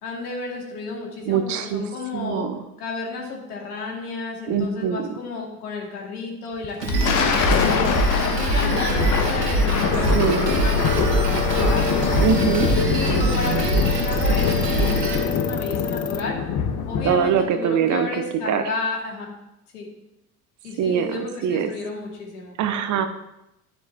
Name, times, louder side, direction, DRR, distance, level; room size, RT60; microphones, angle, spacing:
voice 1, 0.0-2.5 2.8-7.9 8.4-11.9 12.9-16.4 16.9-19.3 19.7-19.9 20.6-22.6, left 3 dB, 70° left, 0 dB, 2.4 m, -32 dB
voice 2, 1.3-1.8 2.1-2.6 4.5-5.1 10.1-10.4 12.2-12.7 17.0-18.1 18.5-18.6 20.8-21.7 22.6-23.1, right 8 dB, 40° right, 8 dB, 0.9 m, -22 dB
Thunder, 6.6-17.4, left 6 dB, 40° left, 1.3 m, -24 dB
Drum kit, 6.8-15.1, right 1 dB, 85° right, 2.0 m, -23 dB
sound 1, 10.0-16.2, left 6 dB, 90° left, 0.6 m, -32 dB
11.5 x 10.0 x 2.9 m, 0.87 s
figure-of-eight pair, 70°, 47 cm